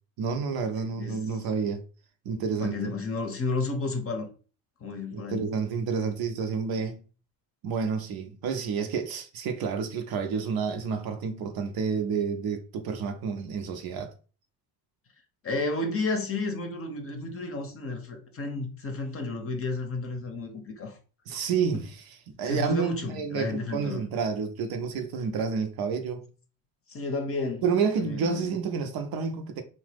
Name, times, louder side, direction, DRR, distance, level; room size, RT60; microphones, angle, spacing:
voice 1, 0.2-1.8 2.3-2.8 5.1-7.0 7.6-14.1 21.3-21.9 22.3-26.2 27.6-29.6, right 5 dB, 55° right, 0.6 m, -29 dB
voice 2, 2.6-4.3 4.8-5.5 15.4-21.0 22.4-24.0 26.9-27.6 28.0-28.5, left 3 dB, 30° left, 0.7 m, -32 dB
2.8 x 2.0 x 3.3 m
supercardioid pair, 75°, 46 cm